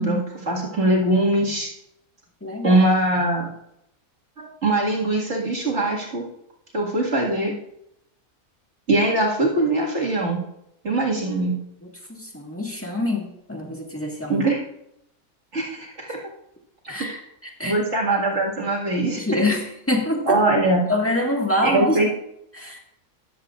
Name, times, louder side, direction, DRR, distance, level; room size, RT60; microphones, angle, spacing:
voice 1, 0.0-1.7 2.6-3.5 4.4-6.2 6.7-7.5 8.9-10.4 10.8-11.6 14.3-14.6 15.5-16.2 17.7-19.4 20.3-20.8 21.6-22.1, right 2 dB, 50° right, -3 dB, 2.3 m, -22 dB
voice 2, 2.4-2.8 7.5-7.6 12.1-14.4 16.9-17.8 19.0-20.4 20.9-22.0 22.5-22.8, left 1 dB, 10° left, 0 dB, 1.6 m, -25 dB
14.0 x 10.5 x 2.5 m, 0.80 s
omnidirectional pair, 1.6 m